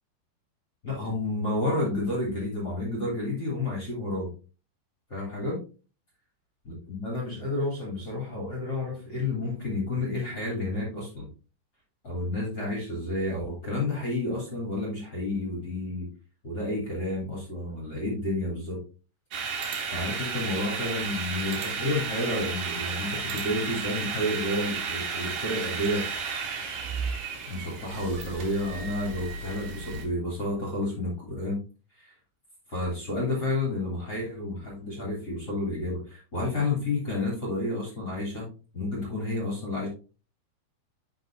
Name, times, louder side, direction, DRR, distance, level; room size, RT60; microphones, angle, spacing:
voice 1, 0.8-4.3 5.1-5.6 6.6-11.3 12.0-16.1 16.4-18.8 19.9-26.0 27.5-31.6 32.0-32.1 32.7-38.5 38.7-39.9, left 2 dB, 30° left, -4 dB, 2.3 m, -30 dB
sound 1, 19.3-30.1, right 5 dB, 60° right, 2.9 m, -33 dB
11.5 x 4.9 x 2.6 m, 0.36 s
omnidirectional pair, 5.4 m